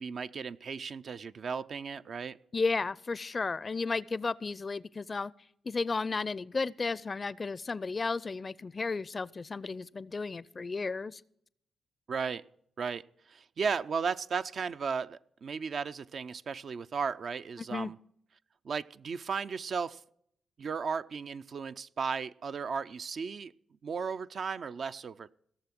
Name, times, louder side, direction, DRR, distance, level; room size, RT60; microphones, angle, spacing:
voice 1, 0.0-2.4 12.1-12.4 12.8-18.0 18.6-20.0 20.6-23.5 23.8-25.3, right 5 dB, 60° right, 0.4 m, -35 dB
voice 2, 2.5-5.3 5.6-11.2 17.7-17.9, left 4 dB, 40° left, 0.5 m, -33 dB
17.0 x 7.0 x 5.9 m
supercardioid pair, 55°, 0 cm